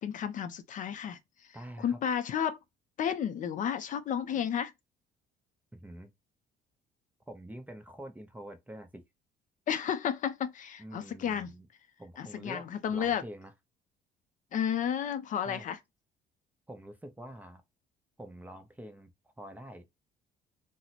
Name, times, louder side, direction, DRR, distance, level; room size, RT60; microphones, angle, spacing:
voice 1, 0.0-1.2 1.8-2.6 3.0-4.7 9.7-11.5 12.2-13.2 14.5-15.8, left 8 dB, 50° left, 0.5 m, -32 dB
voice 2, 1.5-2.0 4.3-4.5 5.7-6.1 7.3-9.0 10.8-11.7 12.0-13.5 15.4-15.7 16.7-17.6 18.2-19.1 19.4-19.9, right 1 dB, 10° right, 0.6 m, -46 dB
2.9 x 2.0 x 4.0 m
cardioid pair, 110°, 17 cm